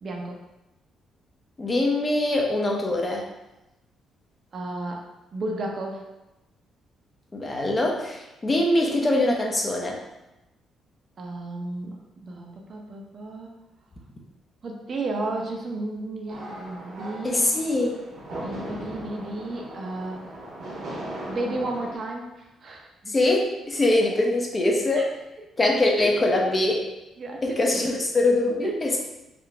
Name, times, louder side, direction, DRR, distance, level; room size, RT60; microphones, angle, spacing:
voice 1, 0.0-0.4 4.5-6.0 11.2-13.5 14.6-17.5 18.3-20.3 21.3-23.1 25.0-25.1 27.2-27.8 28.6-28.8, right 2 dB, 45° right, 0 dB, 0.6 m, -33 dB
voice 2, 1.6-3.3 7.3-10.0 17.2-18.0 23.1-25.1 25.6-26.9 27.4-29.0, left 2 dB, 30° left, 0 dB, 0.6 m, -23 dB
sound 1, 16.3-22.0, right 1 dB, 70° right, 1.1 m, -38 dB
3.7 x 2.4 x 3.3 m, 0.97 s
cardioid pair, 90°, 0 cm